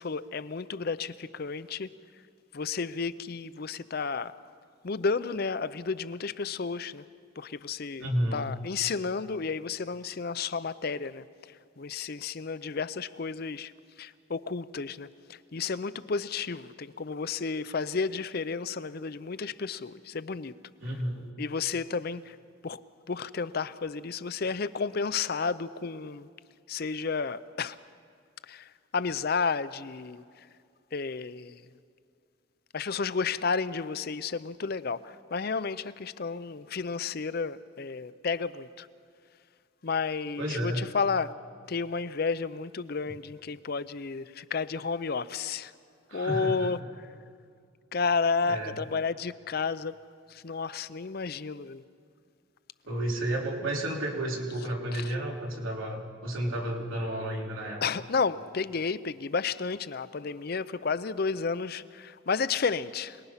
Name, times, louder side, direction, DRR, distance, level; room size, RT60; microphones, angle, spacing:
voice 1, 0.0-1.9 2.5-4.4 4.8-7.0 7.4-8.1 8.3-11.3 11.8-13.7 14.0-20.5 21.4-22.4 22.6-22.8 23.1-26.3 26.7-27.8 28.5-30.5 30.9-31.7 32.7-38.9 39.8-41.3 41.7-45.7 46.1-47.1 47.9-49.9 50.3-51.8 55.0-55.1 57.8-63.2, left 5 dB, 50° left, 15 dB, 0.6 m, -32 dB
voice 2, 8.0-8.5 20.8-21.3 40.4-40.9 46.1-46.7 48.4-48.8 52.9-57.8, right 1 dB, 80° right, -1 dB, 3.5 m, -32 dB
27.0 x 20.0 x 5.7 m, 2.2 s
head